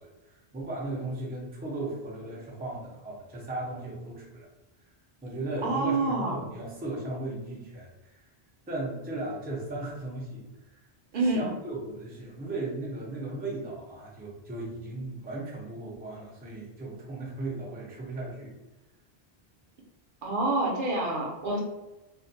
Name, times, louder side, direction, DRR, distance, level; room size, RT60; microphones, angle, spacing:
voice 1, 0.0-4.5 5.2-8.3 8.7-10.8 11.2-18.5, right 2 dB, 15° right, -5 dB, 0.4 m, -36 dB
voice 2, 5.6-6.4 11.1-11.5 20.2-21.6, right 2 dB, 60° right, -1 dB, 0.7 m, -27 dB
2.4 x 2.1 x 2.6 m, 1.0 s
omnidirectional pair, 1.1 m